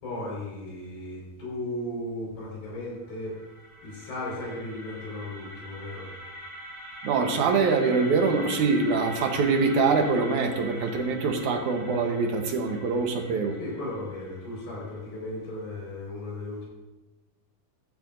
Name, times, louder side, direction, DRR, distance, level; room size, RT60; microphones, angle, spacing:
voice 1, 0.0-3.3 3.8-6.1 13.6-16.6, left 1 dB, 75° left, -4 dB, 6.7 m, -36 dB
sound 1, 3.0-15.0, equal, 45° right, 4.8 m, -42 dB
voice 2, 7.0-13.6, right 4 dB, 65° right, 4 dB, 2.1 m, -24 dB
14.5 x 13.0 x 2.6 m, 1.1 s
omnidirectional pair, 4.3 m